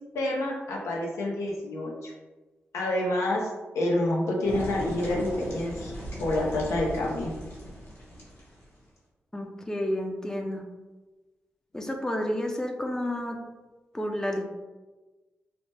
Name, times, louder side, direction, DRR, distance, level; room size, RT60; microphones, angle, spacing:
voice 1, 0.0-2.1 2.7-5.9 6.2-7.3, left 1 dB, 80° left, -2 dB, 0.6 m, -28 dB
sound 1, 4.4-8.8, equal, 60° left, 1.2 m, -38 dB
voice 2, 9.3-10.7 11.7-13.4 13.9-14.5, left 1 dB, 10° left, 2 dB, 0.5 m, -30 dB
2.8 x 2.1 x 3.2 m, 1.2 s
supercardioid pair, 40°, 5 cm